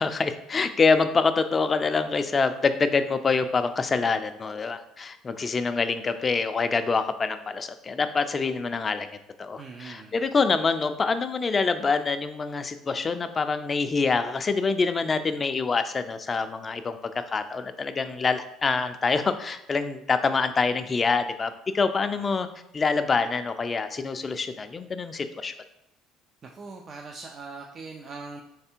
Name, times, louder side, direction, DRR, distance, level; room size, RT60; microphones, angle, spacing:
voice 1, 0.0-9.1 9.4-22.5 22.7-25.5, left 4 dB, 30° left, 9 dB, 0.4 m, -26 dB
voice 2, 9.6-10.2 26.4-28.4, right 4 dB, 40° right, 2 dB, 0.4 m, -41 dB
3.3 x 3.3 x 4.4 m, 0.82 s
supercardioid pair, 90°, 0 cm